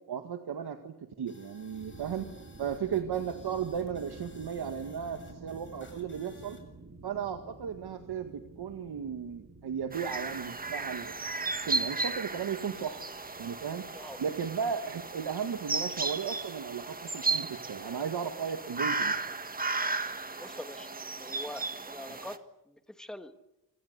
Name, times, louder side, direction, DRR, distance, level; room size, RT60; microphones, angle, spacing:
voice 1, 0.1-2.3 2.6-6.6 7.0-11.2 11.5-13.0 13.4-13.8 14.2-19.1, right 7 dB, 85° right, 7 dB, 2.0 m, -35 dB
sound 1, 1.3-6.6, left 2 dB, 30° left, 7.2 m, -58 dB
sound 2, 1.6-20.4, right 3 dB, 45° right, 4.5 m, -52 dB
sound 3, 9.9-22.4, right 3 dB, 25° right, 1.7 m, -35 dB
voice 2, 20.4-20.9 21.2-22.4 22.7-23.3, left 1 dB, ahead, 9 dB, 1.5 m, -44 dB
26.5 x 25.5 x 8.2 m, 0.88 s
wide cardioid pair, 140°, 38 cm